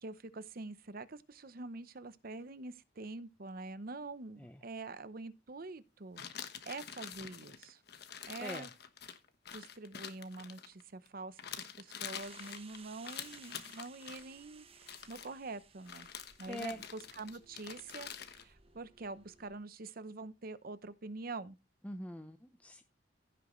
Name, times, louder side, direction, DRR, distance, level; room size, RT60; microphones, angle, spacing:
voice 1, 0.0-6.2 6.7-7.8 8.3-8.7 9.5-16.1 16.4-21.6, right 3 dB, 50° right, 0.8 m, -46 dB
sound 1, 6.2-11.1 11.4-14.2 14.8-15.3 15.9-18.4, left 8 dB, 60° left, 1.2 m, -46 dB
sound 2, 12.2-19.6, right 6 dB, 30° right, 1.0 m, -59 dB
voice 2, 16.5-16.8 21.8-22.8, left 1 dB, 10° left, 0.7 m, -43 dB
16.0 x 6.0 x 3.1 m
head